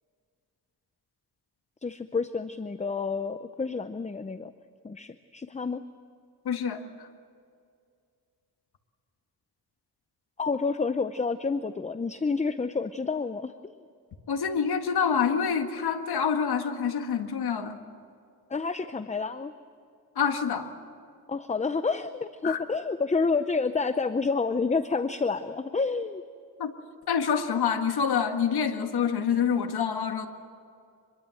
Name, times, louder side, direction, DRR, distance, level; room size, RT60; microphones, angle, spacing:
voice 1, 1.8-4.5 4.8-5.8 10.4-13.7 18.5-19.5 21.3-26.2, left 4 dB, 20° left, 11 dB, 0.6 m, -29 dB
voice 2, 6.5-7.1 14.3-17.8 20.2-20.7 22.4-22.6 26.6-26.7 27.1-30.3, left 7 dB, 80° left, 7 dB, 1.8 m, -27 dB
25.5 x 22.0 x 7.7 m, 2.3 s
cardioid pair, 105°, 38 cm